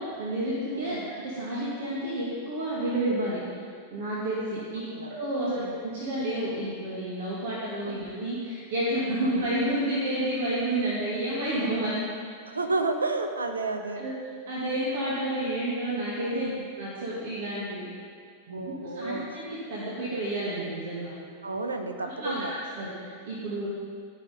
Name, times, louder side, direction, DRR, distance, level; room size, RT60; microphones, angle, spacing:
voice 1, 0.0-3.4 3.9-12.0 14.0-14.2 14.5-16.4 16.8-17.9 18.5-21.1 22.2-23.7, right 1 dB, 55° right, -7 dB, 2.1 m, -30 dB
voice 2, 0.7-1.0 4.9-5.1 5.4-5.7 7.8-8.1 9.2-9.4 12.5-14.0 16.3-16.6 18.5-19.2 21.4-22.5, right 3 dB, 75° right, 6 dB, 0.8 m, -31 dB
13.5 x 5.9 x 5.2 m, 2.2 s
figure-of-eight pair, 90°, 0 cm